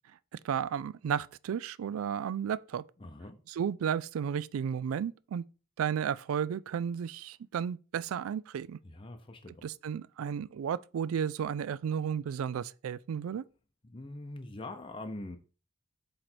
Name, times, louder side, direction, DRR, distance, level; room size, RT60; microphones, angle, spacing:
voice 1, 0.3-2.8 3.5-5.4 5.8-8.8 9.6-13.4, right 8 dB, 90° right, 0.3 m, -33 dB
voice 2, 3.0-3.4 8.8-9.7 13.8-15.4, left 2 dB, 25° left, 0.6 m, -43 dB
7.9 x 3.2 x 4.4 m
head